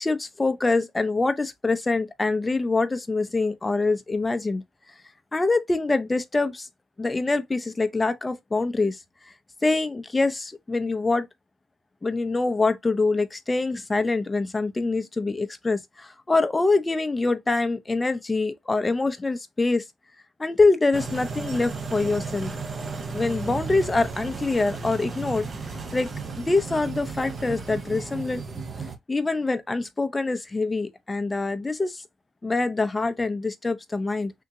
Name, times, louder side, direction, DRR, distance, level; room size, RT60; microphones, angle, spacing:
voice 1, 0.0-4.6 5.3-6.7 7.0-9.0 9.6-11.3 12.0-19.8 20.4-22.5 23.1-25.5 25.9-26.1 26.4-28.4 29.1-32.0 32.4-34.3, left 3 dB, 20° left, 0.6 m, -25 dB
sound 1, 20.9-29.0, right 4 dB, 35° right, 0.8 m, -34 dB
3.5 x 2.8 x 2.6 m
cardioid pair, 90°, 0 cm